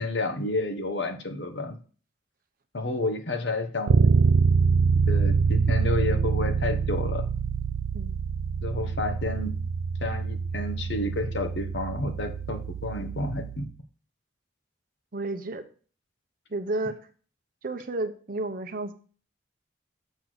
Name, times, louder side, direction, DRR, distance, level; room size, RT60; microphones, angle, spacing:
voice 1, 0.0-1.8 2.7-4.1 5.1-7.3 8.6-9.5 10.0-13.7, left 2 dB, 65° left, 6 dB, 1.3 m, -30 dB
Bass guitar, 3.9-13.7, right 5 dB, 80° right, 0.4 m, -25 dB
voice 2, 15.1-15.7 16.5-17.0 17.6-18.9, right 2 dB, 50° right, 8 dB, 0.7 m, -31 dB
7.1 x 6.3 x 4.0 m, 0.40 s
head